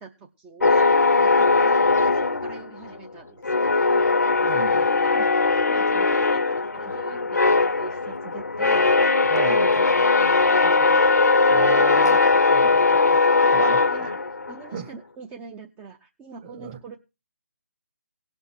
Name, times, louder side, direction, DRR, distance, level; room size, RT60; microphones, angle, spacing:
voice 1, 0.0-4.1 4.9-5.3 5.6-8.9 9.5-11.1 11.9-12.0 13.4-17.0, right 5 dB, 10° right, 0.6 m, -43 dB
sound 1, 0.6-3.1 3.4-14.7, left 3 dB, 85° left, 0.8 m, -19 dB
voice 2, 4.4-4.9 9.3-9.7 11.5-12.2 12.5-13.2 13.5-14.2 14.7-14.9 16.4-16.8, right 8 dB, 35° right, 1.6 m, -33 dB
18.0 x 6.2 x 4.5 m
figure-of-eight pair, 160°, 9 cm